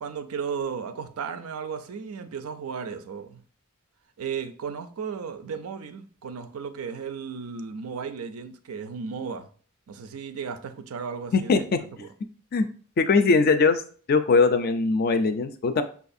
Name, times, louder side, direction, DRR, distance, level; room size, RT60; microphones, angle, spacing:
voice 1, 0.0-3.4 4.2-9.5 9.9-11.6 12.0-12.1, right 6 dB, 80° right, 0.4 m, -35 dB
voice 2, 11.3-11.8 12.5-12.7 13.0-13.8 14.1-15.8, left 4 dB, 45° left, 0.3 m, -21 dB
5.5 x 2.4 x 2.6 m
head